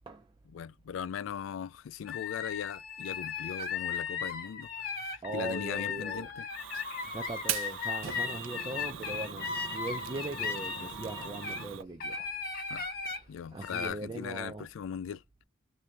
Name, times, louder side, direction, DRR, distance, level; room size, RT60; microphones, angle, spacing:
voice 1, 0.5-6.5 12.7-12.9 13.3-15.2, left 8 dB, 85° left, 0.3 m, -39 dB
sound 1, 2.1-11.6 12.0-13.2 13.6-13.9, left 6 dB, 50° left, 1.0 m, -37 dB
voice 2, 5.2-6.3 7.0-12.3 13.5-14.7, right 2 dB, 25° right, 0.4 m, -40 dB
Fire, 6.5-11.8, right 9 dB, 85° right, 0.6 m, -40 dB
3.3 x 2.6 x 2.9 m
head